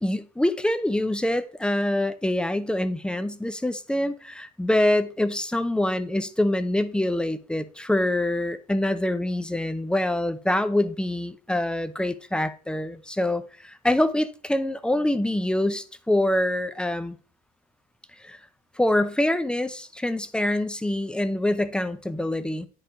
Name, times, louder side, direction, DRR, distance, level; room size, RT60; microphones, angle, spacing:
voice 1, 0.0-17.2 18.2-18.4 18.8-22.7, left 1 dB, 5° left, 0.6 m, -25 dB
10.0 x 4.8 x 3.7 m
cardioid pair, 110°, 17 cm